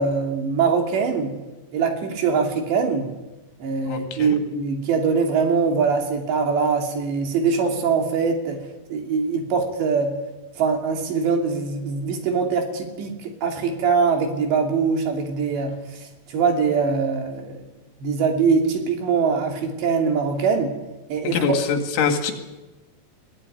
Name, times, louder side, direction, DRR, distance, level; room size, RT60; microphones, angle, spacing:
voice 1, 0.0-1.4 1.7-3.1 3.6-10.2 10.6-15.7 16.3-17.6 18.0-20.8 21.1-21.4, right 5 dB, 70° right, 3 dB, 4.9 m, -22 dB
voice 2, 3.9-4.4 21.3-22.3, left 5 dB, 90° left, 5 dB, 4.7 m, -23 dB
21.5 x 16.5 x 9.8 m, 1.1 s
omnidirectional pair, 5.3 m